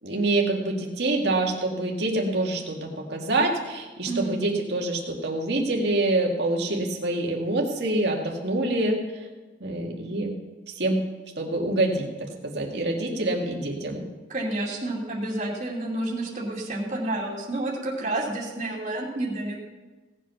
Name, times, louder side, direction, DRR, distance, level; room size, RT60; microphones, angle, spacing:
voice 1, 0.0-9.0 9.6-10.3 10.7-11.0 11.4-14.0, right 2 dB, 60° right, 0 dB, 2.0 m, -26 dB
voice 2, 4.0-4.4 14.3-19.6, right 1 dB, 35° right, -4 dB, 2.7 m, -30 dB
17.5 x 8.1 x 5.8 m, 1.3 s
head